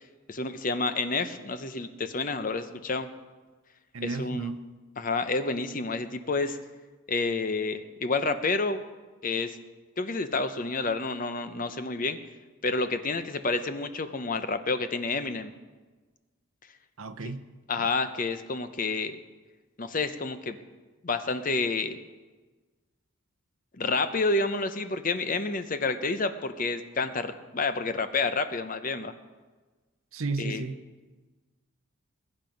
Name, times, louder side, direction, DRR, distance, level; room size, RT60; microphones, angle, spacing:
voice 1, 0.3-3.1 4.0-4.5 5.0-6.6 7.1-8.8 9.2-9.6 10.0-12.2 12.6-15.5 17.7-19.2 19.8-20.6 21.0-22.0 23.8-29.1 30.4-30.6, left 3 dB, 40° left, 0.7 m, -29 dB
voice 2, 3.9-4.7 17.0-17.5 17.8-17.9 30.1-30.8, right 3 dB, 70° right, 0.8 m, -33 dB
21.0 x 9.0 x 5.2 m
head